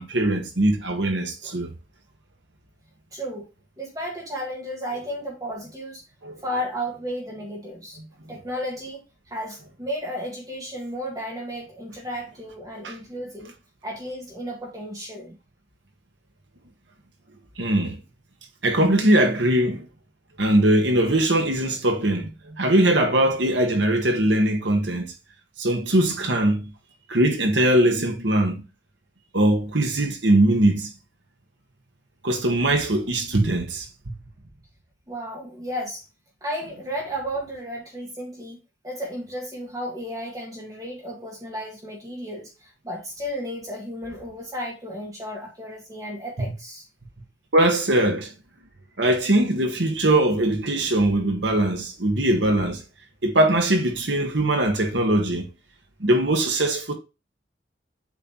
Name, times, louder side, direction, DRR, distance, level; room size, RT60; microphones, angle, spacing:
voice 1, 0.0-1.7 6.2-6.4 12.8-13.0 17.6-18.0 18.6-19.9 20.4-25.1 25.6-26.7 27.1-28.6 29.3-30.9 32.2-34.2 46.4-46.5 47.5-48.3 49.0-52.8 53.2-55.5 56.0-56.9, right 1 dB, 90° right, 1.6 m, -21 dB
voice 2, 3.1-3.5 3.8-6.0 6.4-8.0 8.3-13.5 13.8-15.4 35.1-36.0 36.4-38.6 38.8-46.8, equal, 20° right, 1.8 m, -33 dB
7.8 x 4.1 x 3.1 m
head